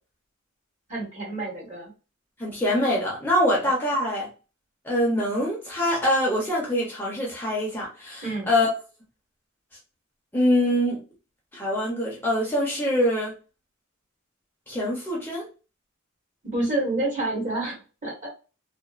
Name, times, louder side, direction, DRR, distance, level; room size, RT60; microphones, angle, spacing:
voice 1, 0.9-1.9 3.5-3.6 8.2-8.5 16.5-18.3, right 2 dB, 35° right, 1.2 m, -28 dB
voice 2, 2.4-4.3 4.8-8.7 10.3-11.0 11.5-13.3 14.7-15.5, left 1 dB, 10° left, 0.7 m, -24 dB
2.9 x 2.0 x 2.4 m
head